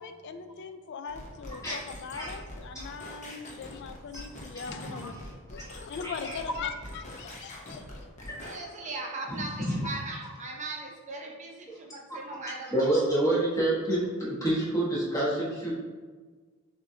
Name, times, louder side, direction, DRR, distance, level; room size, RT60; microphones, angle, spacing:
voice 1, 0.0-5.2 5.5-8.1, left 5 dB, 50° left, 9 dB, 0.3 m, -40 dB
sound 1, 1.1-8.6, left 1 dB, 30° left, 0.7 m, -44 dB
voice 2, 4.7-5.1 6.0-6.4 8.3-8.6 9.3-9.4 9.7-9.9 12.7-15.7, right 1 dB, 15° left, -7 dB, 1.2 m, -28 dB
voice 3, 8.4-13.0, right 2 dB, 35° right, 0 dB, 0.6 m, -39 dB
6.2 x 2.7 x 2.7 m, 1.4 s
head